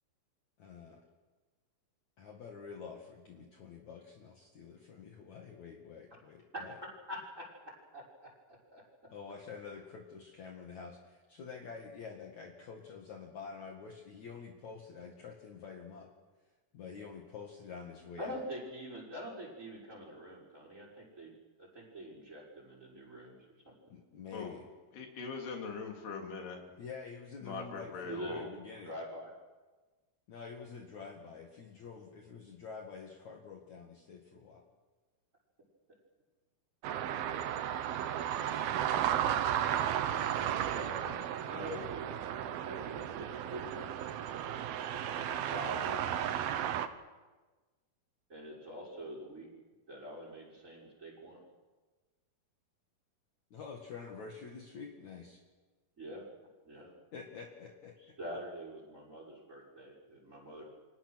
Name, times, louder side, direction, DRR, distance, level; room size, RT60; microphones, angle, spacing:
voice 1, 0.6-1.0 2.2-6.8 9.1-16.1 16.7-18.4 23.9-24.7 26.8-29.0 30.3-34.6 40.6-41.8 53.5-55.4 57.1-57.9, left 5 dB, 50° left, 1 dB, 3.0 m, -48 dB
voice 2, 7.1-7.4 7.9-8.8 18.2-21.3 21.6-23.4 23.6-23.7 28.1-28.4 28.8-29.3 41.4-42.1 42.6-44.1 44.9-46.1 48.3-49.5 49.9-51.4 56.0-56.3 56.6-56.9 58.0-60.7, right 1 dB, 20° right, -1 dB, 5.9 m, -45 dB
voice 3, 24.9-26.6 27.4-28.5, left 5 dB, 85° left, 2 dB, 5.1 m, -41 dB
sound 1, 36.8-46.9, right 10 dB, 75° right, 2.9 m, -34 dB
30.0 x 25.0 x 6.3 m, 1.3 s
omnidirectional pair, 4.5 m